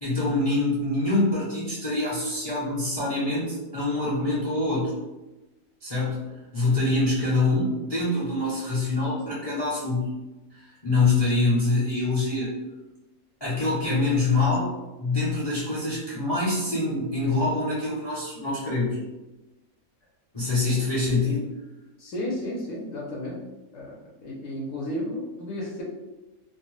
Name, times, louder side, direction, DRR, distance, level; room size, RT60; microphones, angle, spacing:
voice 1, 0.0-5.0 5.8-10.1 10.5-12.6 13.4-14.7 15.0-19.0 20.3-21.5, left 2 dB, 35° left, -7 dB, 0.4 m, -25 dB
voice 2, 22.0-23.4 23.7-23.9 24.2-25.8, left 1 dB, 65° left, -3 dB, 0.9 m, -33 dB
2.5 x 2.1 x 3.0 m, 1.0 s
omnidirectional pair, 1.5 m